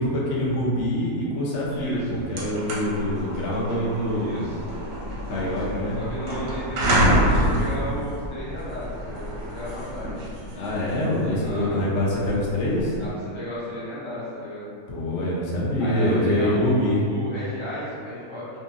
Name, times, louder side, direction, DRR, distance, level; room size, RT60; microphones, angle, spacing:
voice 1, 0.0-4.4 5.3-6.0 10.5-13.0 14.9-17.0, left 1 dB, 65° left, -5 dB, 0.8 m, -25 dB
voice 2, 1.7-2.2 3.5-3.7 4.2-4.6 6.0-10.2 11.4-11.8 13.0-14.7 15.8-18.5, equal, 35° left, -10 dB, 0.4 m, -34 dB
sound 1, 1.8-1.9 2.2-13.1, equal, 65° right, 1.0 m, -27 dB
2.8 x 2.6 x 2.4 m, 2.3 s
omnidirectional pair, 1.7 m